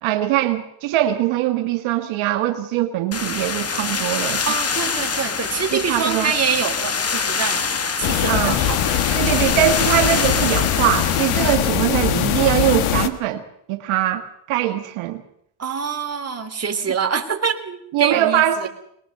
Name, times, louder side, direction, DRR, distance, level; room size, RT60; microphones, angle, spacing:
voice 1, 0.0-4.5 5.7-6.3 8.3-8.6 9.2-13.4 13.7-15.2 17.9-18.7, right 13 dB, 70° right, 6 dB, 1.6 m, -22 dB
sound 1, 3.1-11.6, left 5 dB, 30° left, 1.9 m, -25 dB
voice 2, 4.4-7.6 8.0-9.5 15.6-18.7, right 6 dB, 30° right, 5 dB, 3.4 m, -25 dB
sound 2, 8.0-13.1, left 11 dB, 75° left, 1.8 m, -21 dB
22.5 x 20.5 x 6.7 m, 0.72 s
supercardioid pair, 90°, 49 cm